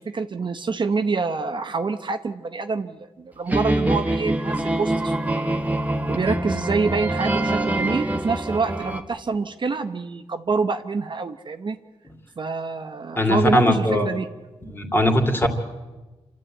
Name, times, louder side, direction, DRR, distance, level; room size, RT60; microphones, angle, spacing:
voice 1, 0.0-5.6 6.1-11.8 12.4-14.3, right 4 dB, 45° right, 8 dB, 0.9 m, -26 dB
sound 1, 3.5-9.0, right 1 dB, 15° right, 1.4 m, -24 dB
voice 2, 13.2-14.1 14.7-15.5, left 1 dB, 20° left, 4 dB, 2.6 m, -20 dB
27.5 x 12.5 x 8.9 m, 1.2 s
wide cardioid pair, 125°, 11 cm